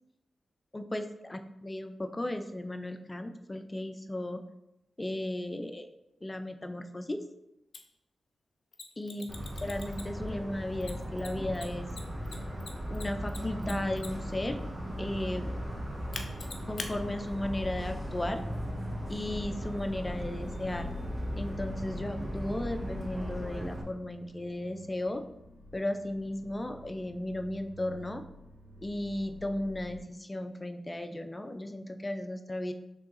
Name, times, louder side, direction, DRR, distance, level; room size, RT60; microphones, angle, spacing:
voice 1, 1.3-4.4 5.0-5.9 6.2-7.2 9.0-9.3 9.6-11.9 12.9-14.6 15.0-15.5 16.7-18.4 19.1-20.9 21.4-25.2 25.7-28.2 28.8-32.7, left 1 dB, 25° left, 7 dB, 0.6 m, -35 dB
Mechanisms, 7.7-7.8 8.7-10.3 10.8-14.3 16.1-16.9, left 4 dB, 60° left, 0.8 m, -42 dB
Motor vehicle (road) / Siren, 9.3-23.8, equal, 20° right, 1.6 m, -37 dB
sound 1, 15.9-30.0, left 1 dB, 55° right, 2.2 m, -49 dB
5.3 x 3.6 x 5.6 m, 0.86 s
cardioid pair, 50°, 0 cm